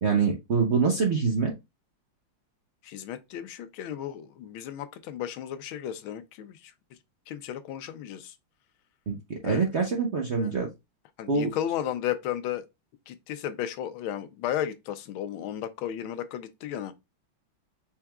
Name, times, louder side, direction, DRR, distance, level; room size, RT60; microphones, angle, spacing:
voice 1, 0.0-1.5 9.1-10.7 11.3-11.5, right 5 dB, 60° right, 0.7 m, -25 dB
voice 2, 2.8-6.7 7.3-8.3 9.4-9.7 10.4-10.5 11.2-12.6 13.1-16.9, left 10 dB, 90° left, 1.4 m, -34 dB
5.8 x 3.6 x 2.3 m
omnidirectional pair, 2.2 m